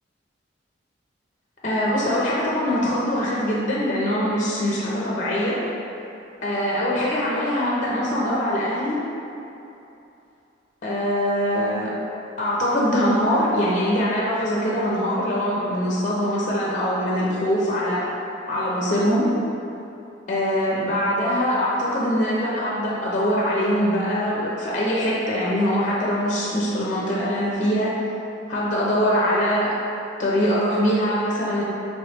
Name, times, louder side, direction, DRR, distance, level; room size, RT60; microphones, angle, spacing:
voice 1, 1.6-5.6 6.4-9.0 10.8-11.9 12.4-18.0 18.5-19.3 20.3-27.9 28.5-29.7 30.2-31.6, equal, 40° left, -6 dB, 0.5 m, -23 dB
3.0 x 3.0 x 3.2 m, 2.8 s
head